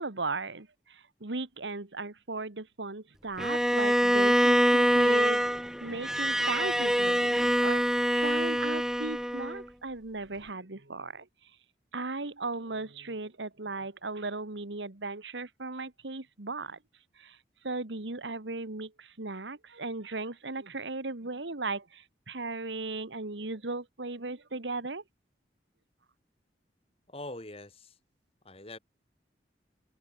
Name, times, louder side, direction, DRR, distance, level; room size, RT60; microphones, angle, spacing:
voice 1, 0.0-5.4 5.8-7.8 8.1-11.3 11.9-16.8 17.2-17.4 17.6-25.0, right 3 dB, 85° right, 1.7 m, -37 dB
Bowed string instrument, 3.4-9.6, equal, 5° right, 1.2 m, -25 dB
voice 2, 27.1-28.0 28.4-28.8, left 2 dB, 35° left, 4.1 m, -43 dB
head